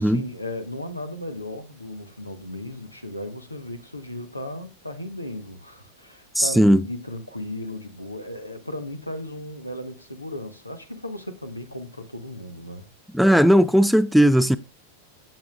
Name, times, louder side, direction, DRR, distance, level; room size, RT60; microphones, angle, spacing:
voice 1, 0.0-12.9, left 1 dB, 85° left, 1.1 m, -36 dB
voice 2, 6.4-6.8 13.1-14.6, equal, ahead, 0.4 m, -17 dB
12.0 x 7.9 x 2.4 m
figure-of-eight pair, 90°, 0 cm